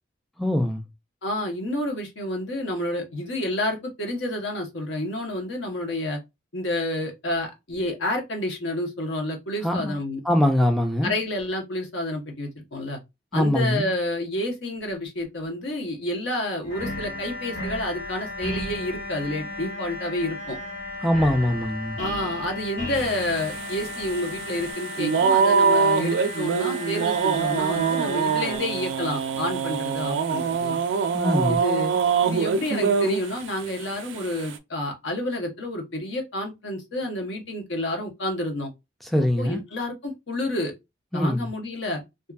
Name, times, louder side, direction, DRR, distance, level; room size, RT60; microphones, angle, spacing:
voice 1, 0.4-0.8 9.6-10.0 10.2-11.1 13.3-13.9 21.0-22.0 31.1-31.6 39.0-39.6 41.1-41.5, left 1 dB, ahead, 0.3 m, -22 dB
voice 2, 1.2-6.2 6.5-10.2 11.0-13.0 13.3-20.6 22.0-30.8 31.5-32.0 32.2-38.7 39.4-40.7 41.1-42.0, left 1 dB, 90° left, 0.9 m, -29 dB
sound 1, 16.6-24.7, equal, 40° left, 1.3 m, -38 dB
sound 2, 16.7-28.6, left 2 dB, 65° left, 1.5 m, -36 dB
sound 3, 23.0-33.5 33.9-34.6, right 5 dB, 85° right, 0.4 m, -24 dB
2.6 x 2.4 x 2.3 m
head